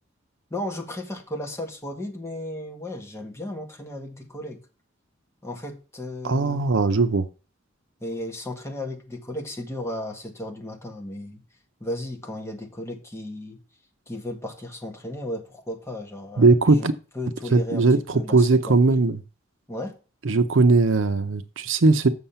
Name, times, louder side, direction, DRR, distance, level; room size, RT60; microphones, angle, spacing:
voice 1, 0.5-4.6 5.4-6.7 8.0-11.4 11.8-13.6 14.1-16.9 17.1-17.8 18.1-18.8 19.7-19.9, left 1 dB, 15° left, 1.6 m, -35 dB
voice 2, 6.2-7.3 16.4-16.9 17.5-19.2 20.2-22.1, right 3 dB, 70° right, 0.7 m, -19 dB
7.2 x 6.5 x 5.6 m
head